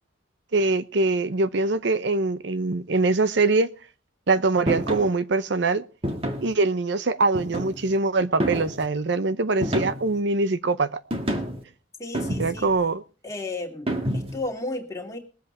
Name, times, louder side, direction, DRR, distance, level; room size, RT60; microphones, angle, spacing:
voice 1, 0.5-3.7 4.3-5.8 6.4-11.0 12.4-13.0, right 3 dB, 65° right, 0.7 m, -23 dB
sound 1, 4.7-5.1 6.0-6.5 7.3-7.9 8.4-8.9 9.6-10.2 11.1-11.6 12.1-12.8 13.9-14.5, equal, 30° right, 1.8 m, -28 dB
voice 2, 12.0-12.7 13.2-15.2, left 2 dB, 15° left, 2.5 m, -33 dB
21.0 x 7.9 x 4.3 m
head